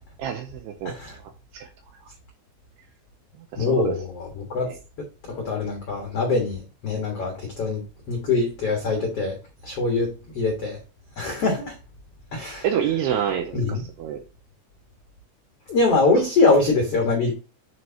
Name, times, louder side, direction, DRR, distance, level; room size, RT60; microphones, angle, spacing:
voice 1, 0.2-1.0 1.5-1.7 3.5-4.0 4.7-4.8 12.6-14.2, right 9 dB, 85° right, 2.4 m, -27 dB
voice 2, 0.8-1.2 3.6-4.7 5.3-9.4 9.6-10.8 11.2-11.7 12.3-12.6 13.5-13.8 15.7-17.3, left 3 dB, 80° left, 1.3 m, -23 dB
9.2 x 4.6 x 2.8 m
omnidirectional pair, 5.3 m